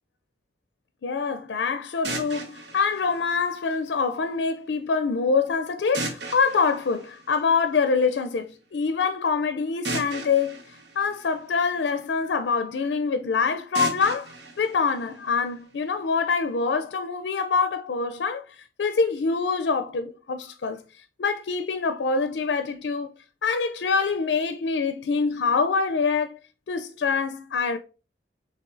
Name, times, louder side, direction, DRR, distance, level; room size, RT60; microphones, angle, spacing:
voice 1, 1.0-23.1 23.4-26.4 26.7-27.8, left 5 dB, 80° left, 0.4 m, -25 dB
sound 1, 2.0-4.1 5.9-7.9 9.8-12.1 13.7-15.8, right 2 dB, 75° right, 1.1 m, -36 dB
5.4 x 3.5 x 2.5 m
head